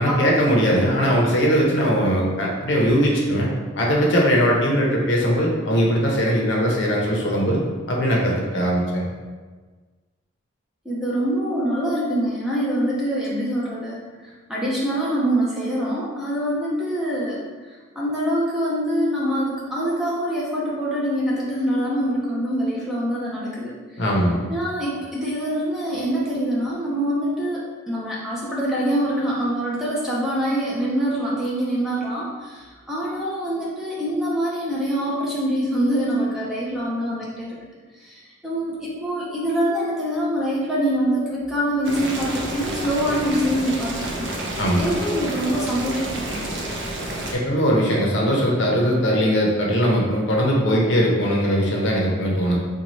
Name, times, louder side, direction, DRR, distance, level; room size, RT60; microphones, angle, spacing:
voice 1, 0.0-3.5 3.8-7.6 7.9-9.1 24.0-24.4 44.6-44.9 47.3-52.6, equal, 60° left, -2 dB, 0.6 m, -20 dB
voice 2, 10.8-24.0 24.5-37.6 37.9-46.7, equal, ahead, -7 dB, 0.5 m, -25 dB
Boiling, 41.8-47.4, right 1 dB, 55° right, 0.5 m, -30 dB
3.9 x 2.2 x 3.0 m, 1.4 s
head